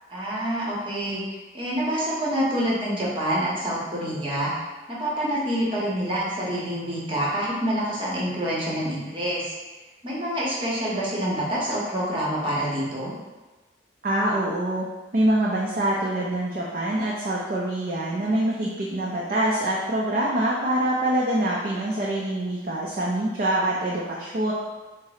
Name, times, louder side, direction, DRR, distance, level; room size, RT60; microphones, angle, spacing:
voice 1, 0.1-4.5 4.9-9.5 10.0-13.1, equal, 30° right, -6 dB, 0.8 m, -27 dB
voice 2, 14.0-14.9 15.1-24.5, right 1 dB, 50° right, -5 dB, 0.4 m, -25 dB
3.9 x 2.0 x 4.0 m, 1.2 s
head